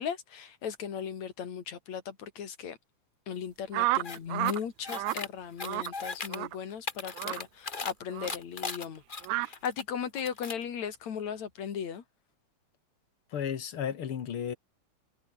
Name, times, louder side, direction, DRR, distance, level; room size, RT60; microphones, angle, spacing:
voice 1, 0.0-2.8 3.3-9.0 9.4-12.0, left 8 dB, 65° left, 3.8 m, -37 dB
sound 1, 3.7-4.6 4.9-5.2 5.6-5.9 6.3-6.5 7.2-7.4 8.1-8.3 9.2-9.5, right 18 dB, 85° right, 2.0 m, -30 dB
sound 2, 4.0-4.2 4.4-5.3 5.6-6.4 6.7-7.9 8.2-9.8 10.1-10.6, left 4 dB, 30° left, 1.0 m, -38 dB
voice 2, 13.3-14.5, left 8 dB, 50° left, 2.2 m, -33 dB
omnidirectional pair, 3.4 m